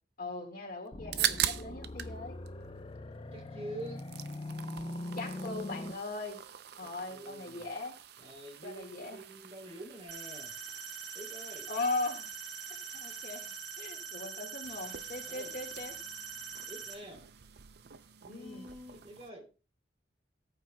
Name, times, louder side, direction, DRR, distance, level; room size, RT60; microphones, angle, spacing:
voice 1, 0.2-2.4 5.1-6.4 6.8-8.0 8.6-9.2 11.7-12.3 12.9-16.0 18.3-18.7, left 2 dB, 55° left, -1 dB, 1.9 m, -39 dB
sound 1, 0.9-5.9, left 1 dB, 30° left, 0.7 m, -42 dB
sound 2, 0.9-2.2 2.5-3.5 3.8-19.3, right 10 dB, 65° right, 0.6 m, -42 dB
voice 2, 3.3-4.0 6.8-7.7 8.2-10.5 11.1-11.7 15.3-15.5 16.7-17.3 18.2-19.5, right 1 dB, 35° right, 2 dB, 3.1 m, -46 dB
sound 3, 10.1-16.9, right 6 dB, 85° right, 2.3 m, -43 dB
18.0 x 9.0 x 2.3 m, 0.34 s
head